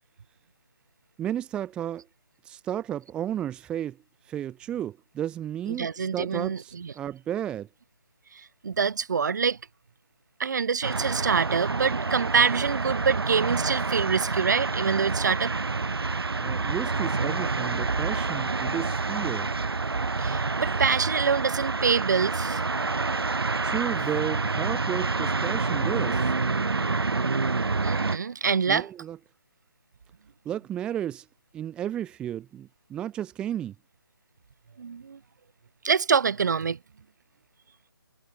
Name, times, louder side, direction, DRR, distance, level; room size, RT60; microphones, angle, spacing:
voice 1, 1.2-2.1 2.4-4.0 4.2-7.7 16.4-19.5 23.6-26.3 28.7-29.2 30.4-31.3 31.5-33.7, right 10 dB, 5° right, 1.3 m, -33 dB
voice 2, 5.7-6.9 8.3-9.6 10.4-15.5 20.2-22.6 27.8-28.9 34.8-35.2 35.8-36.8, right 6 dB, 45° right, 4.3 m, -25 dB
sound 1, 10.8-28.2, right 3 dB, 75° right, 5.3 m, -28 dB
figure-of-eight pair, 165°, 13 cm